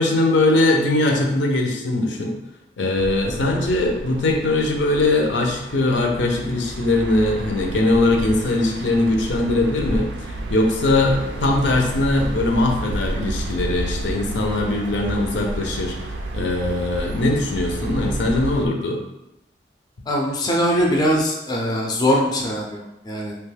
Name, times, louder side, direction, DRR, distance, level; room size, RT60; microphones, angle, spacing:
voice 1, 0.0-2.3 2.8-19.0, left 2 dB, 75° left, 2 dB, 0.5 m, -21 dB
sound 1, 3.0-18.7, right 2 dB, 85° right, 0.3 m, -31 dB
voice 2, 20.1-23.4, equal, 20° left, -1 dB, 0.4 m, -21 dB
2.8 x 2.2 x 3.2 m, 0.90 s
head